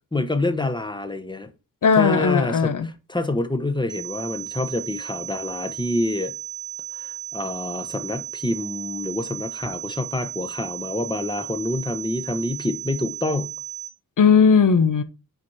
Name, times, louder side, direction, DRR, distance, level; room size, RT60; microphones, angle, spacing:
voice 1, 0.1-1.5 1.9-6.3 6.9-13.5, left 2 dB, 10° left, 1.0 m, -27 dB
voice 2, 1.8-2.9 14.2-15.0, left 6 dB, 60° left, 0.8 m, -17 dB
sound 1, 3.9-13.9, right 8 dB, 80° right, 1.3 m, -35 dB
9.2 x 4.4 x 4.7 m
wide cardioid pair, 105°, 36 cm